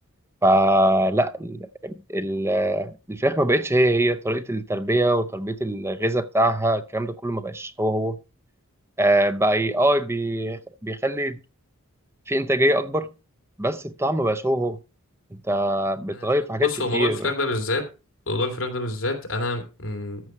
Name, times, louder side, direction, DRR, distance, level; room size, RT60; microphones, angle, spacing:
voice 1, 0.4-8.2 9.0-11.4 12.3-13.1 13.6-14.8 15.3-17.3, right 1 dB, 10° right, 0.6 m, -23 dB
voice 2, 16.6-17.8 18.3-20.2, left 2 dB, 55° left, 2.7 m, -27 dB
14.0 x 6.4 x 4.5 m
head